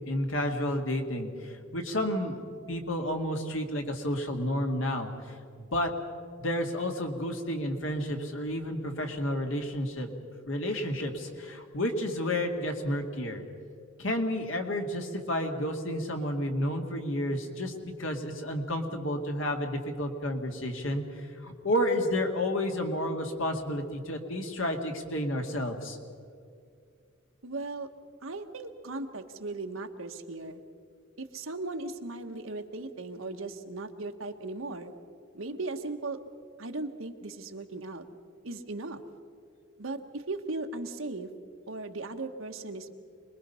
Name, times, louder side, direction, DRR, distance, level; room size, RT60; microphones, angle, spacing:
voice 1, 0.0-5.1 5.6-5.9 6.4-10.1 10.5-13.4 14.0-21.0 21.4-26.0, left 1 dB, 75° left, 3 dB, 2.1 m, -31 dB
voice 2, 27.4-27.9 28.2-30.6 31.2-34.9 35.3-36.2 36.6-38.0 38.4-39.0 39.8-41.3 41.7-42.9, right 2 dB, 90° right, 6 dB, 1.3 m, -37 dB
25.5 x 21.0 x 5.6 m, 2.3 s
head